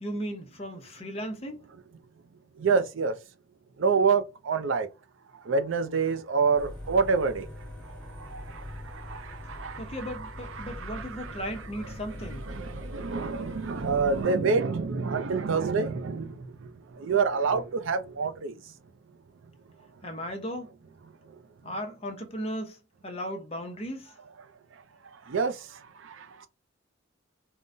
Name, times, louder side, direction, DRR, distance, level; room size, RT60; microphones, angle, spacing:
voice 1, 0.0-1.6 9.8-12.5 20.0-20.7 21.6-24.2, equal, 30° left, 0.7 m, -36 dB
voice 2, 2.6-3.2 3.8-4.9 5.4-7.5 7.8-10.2 10.5-11.4 12.5-18.6 25.1-26.5, right 5 dB, 75° right, 0.5 m, -28 dB
sound 1, 6.6-14.2, left 1 dB, 5° left, 1.3 m, -42 dB
3.7 x 2.1 x 2.5 m
head